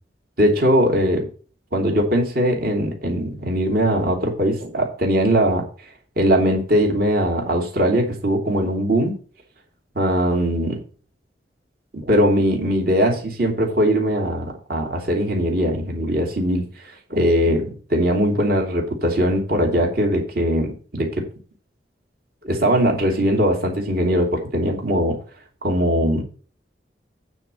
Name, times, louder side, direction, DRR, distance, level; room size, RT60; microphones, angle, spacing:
voice 1, 0.4-1.3 1.7-5.7 6.2-9.2 9.9-10.8 11.9-16.7 17.1-21.3 22.4-25.2 25.6-26.2, equal, 55° right, 2 dB, 2.6 m, -20 dB
9.0 x 4.4 x 7.5 m, 0.40 s
head